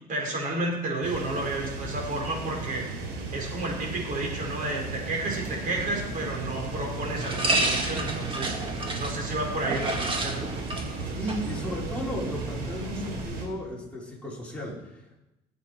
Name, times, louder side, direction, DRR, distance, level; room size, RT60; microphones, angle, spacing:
voice 1, 0.1-2.9 3.3-8.6 9.0-10.4, right 2 dB, 55° right, 0 dB, 4.8 m, -31 dB
sound 1, 1.0-13.5, right 3 dB, 85° right, 3.4 m, -36 dB
sound 2, 5.2-13.2, right 2 dB, 30° right, 2.1 m, -32 dB
voice 2, 11.2-15.2, equal, 5° left, -4 dB, 3.8 m, -35 dB
18.0 x 8.3 x 4.7 m, 0.97 s
cardioid pair, 110°, 17 cm